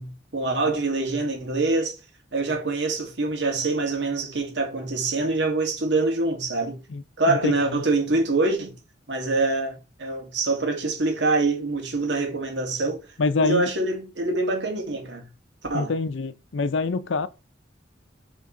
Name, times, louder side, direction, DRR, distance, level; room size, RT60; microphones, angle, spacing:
voice 1, 0.0-2.0 2.3-6.8 7.2-8.8 9.1-13.0 13.4-15.3 15.7-15.9, right 3 dB, 65° right, 1.8 m, -25 dB
voice 2, 7.3-7.8 13.2-13.7 15.7-17.3, left 4 dB, 85° left, 0.6 m, -25 dB
7.1 x 3.6 x 3.8 m
head